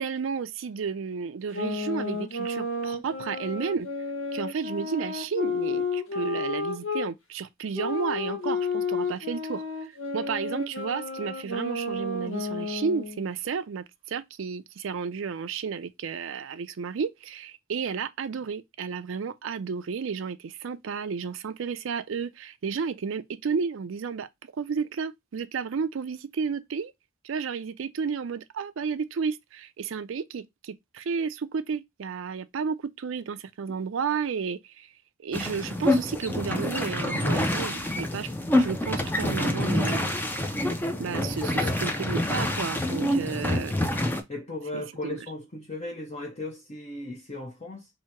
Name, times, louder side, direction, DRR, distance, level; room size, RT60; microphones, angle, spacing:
voice 1, 0.0-3.9 4.3-9.6 10.1-24.3 24.6-26.9 27.2-34.9 35.2-38.3 38.6-40.1 41.0-43.7 44.7-45.2, right 5 dB, 70° right, 0.4 m, -32 dB
sound 1, 1.5-7.1 7.7-13.2, left 3 dB, 75° left, 1.0 m, -31 dB
sound 2, 35.3-44.2, left 1 dB, 10° left, 0.5 m, -27 dB
voice 2, 41.2-41.8 43.2-43.7 44.3-47.9, left 2 dB, 35° left, 0.7 m, -37 dB
2.8 x 2.7 x 4.4 m
head